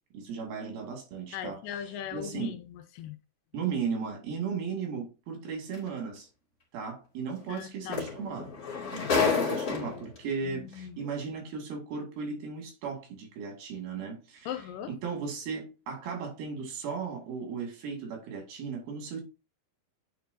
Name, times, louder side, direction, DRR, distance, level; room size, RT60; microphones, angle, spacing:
voice 1, 0.1-1.6 2.1-2.5 3.5-6.3 6.7-8.5 8.9-14.5 14.9-19.2, right 5 dB, 85° right, 4.1 m, -36 dB
voice 2, 1.3-3.2 7.5-8.1 9.0-9.6 10.4-11.0 14.5-14.9, left 10 dB, 80° left, 2.2 m, -39 dB
sound 1, 5.7-5.9 7.6-7.7 7.9-10.2 11.1-11.2, left 5 dB, 25° left, 2.6 m, -29 dB
9.1 x 4.5 x 2.7 m
omnidirectional pair, 4.1 m